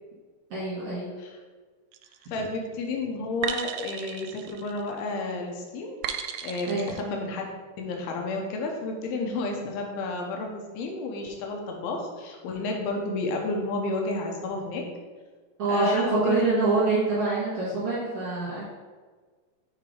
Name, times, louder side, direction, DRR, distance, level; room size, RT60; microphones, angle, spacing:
voice 1, 0.5-1.2 2.2-2.3 6.7-6.9 15.6-18.6, right 3 dB, 50° right, -9 dB, 2.2 m, -25 dB
sound 1, 1.9-2.3 3.4-5.1 6.0-7.0, right 9 dB, 80° right, 2.2 m, -35 dB
voice 2, 2.3-6.0 6.4-7.5 7.8-14.8 15.7-16.4, left 2 dB, 90° left, 1 dB, 2.8 m, -31 dB
6.6 x 3.8 x 4.8 m, 1.4 s
omnidirectional pair, 4.4 m